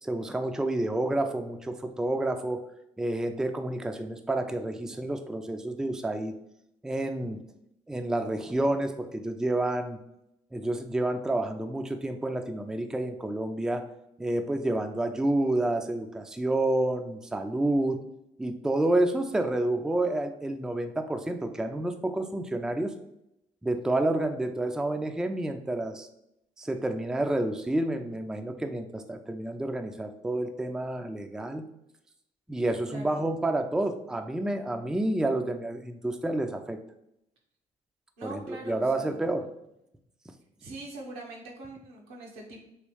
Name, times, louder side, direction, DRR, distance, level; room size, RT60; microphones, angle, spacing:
voice 1, 0.0-2.6 3.0-6.3 6.8-7.4 7.9-10.0 10.5-13.8 14.2-18.0 18.4-22.9 23.6-26.1 26.6-31.7 32.5-36.8 38.2-39.5, right 1 dB, 5° right, 7 dB, 0.3 m, -29 dB
voice 2, 32.9-33.2 38.2-39.2 40.6-42.6, right 2 dB, 85° right, -1 dB, 0.9 m, -42 dB
3.1 x 3.0 x 3.1 m, 0.82 s
supercardioid pair, 65°, 16 cm